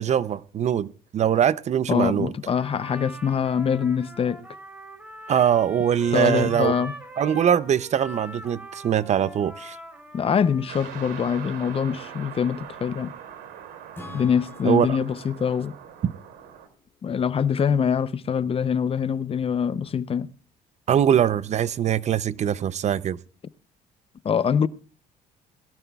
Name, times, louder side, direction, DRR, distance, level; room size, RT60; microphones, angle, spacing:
voice 1, 0.0-2.3 5.3-6.7 7.2-9.8 14.6-15.0 16.0-16.1 20.9-23.2, right 9 dB, 40° right, 0.5 m, -22 dB
voice 2, 1.9-4.4 6.1-6.9 10.1-13.1 14.1-15.7 17.0-20.3 24.2-24.7, left 7 dB, 35° left, 0.6 m, -24 dB
Trumpet, 2.5-10.9, right 1 dB, 10° right, 3.4 m, -42 dB
sound 1, 10.7-16.7, right 9 dB, 80° right, 3.0 m, -42 dB
Acoustic guitar / Strum, 13.9-17.5, left 2 dB, 15° left, 2.9 m, -47 dB
21.5 x 13.0 x 2.3 m
cardioid pair, 110°, 17 cm